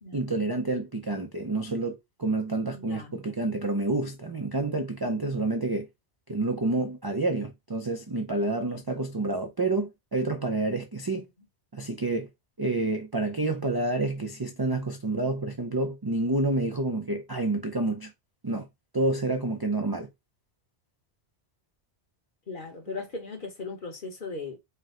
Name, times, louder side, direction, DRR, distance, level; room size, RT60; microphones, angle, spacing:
voice 1, 0.1-5.9 6.3-11.2 11.7-12.3 12.6-18.1 18.4-18.7 18.9-20.1, right 2 dB, 30° right, 0.4 m, -28 dB
voice 2, 2.7-3.1 22.5-24.6, left 3 dB, 50° left, 1.2 m, -38 dB
4.5 x 2.2 x 3.7 m
omnidirectional pair, 1.2 m